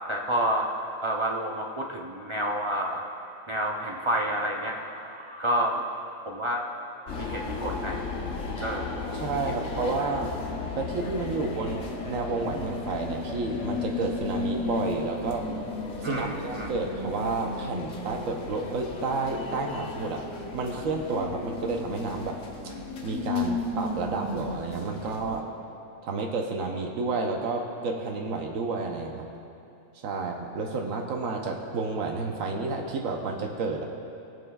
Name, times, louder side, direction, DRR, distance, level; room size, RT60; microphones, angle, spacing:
voice 1, 0.1-0.7 1.0-3.0 3.5-5.9 6.3-6.6 7.2-8.0 8.6-9.4 9.8-10.1 16.0-16.7, right 1 dB, 35° right, -1 dB, 0.5 m, -29 dB
sound 1, 7.1-25.4, left 4 dB, 65° left, 1.1 m, -34 dB
voice 2, 9.1-10.3 10.8-15.5 16.0-20.2 20.5-22.4 23.0-25.4 26.0-29.3 30.0-33.8, right 3 dB, 85° right, 1 dB, 1.2 m, -30 dB
20.5 x 7.0 x 2.3 m, 2.8 s
omnidirectional pair, 1.4 m